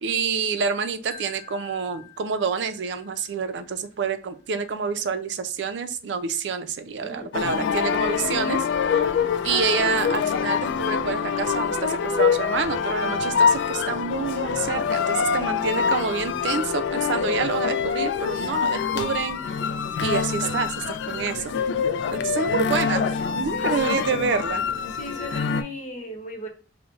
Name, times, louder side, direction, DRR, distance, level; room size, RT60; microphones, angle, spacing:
voice 1, 0.0-8.7 8.9-9.0 9.4-19.4 20.0-21.5 22.1-23.1 23.3-24.6, right 5 dB, 80° right, 0.4 m, -27 dB
Wind chime, 1.1-4.2, left 5 dB, 15° left, 0.6 m, -49 dB
voice 2, 7.0-7.7 22.1-22.6 23.5-24.2 24.9-26.5, left 2 dB, 45° left, 0.9 m, -37 dB
sound 1, 7.3-25.6, left 6 dB, 80° left, 0.3 m, -25 dB
5.2 x 2.1 x 2.4 m
head